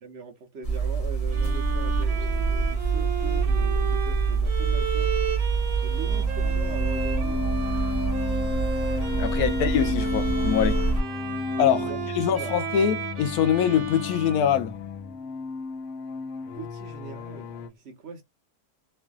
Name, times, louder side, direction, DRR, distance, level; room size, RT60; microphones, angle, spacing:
voice 1, 0.0-5.1 5.8-7.4 9.3-9.6 11.8-12.0 12.3-12.5 16.5-18.2, right 4 dB, 55° right, 0.8 m, -41 dB
sound 1, 0.6-11.0, right 4 dB, 30° left, 0.7 m, -26 dB
Bowed string instrument, 1.3-15.2, right 5 dB, 75° right, 1.3 m, -35 dB
sound 2, 6.0-17.7, left 4 dB, 65° left, 0.9 m, -33 dB
voice 2, 9.2-10.8 11.6-14.8, left 9 dB, 85° left, 1.1 m, -24 dB
3.1 x 2.5 x 2.3 m
omnidirectional pair, 1.5 m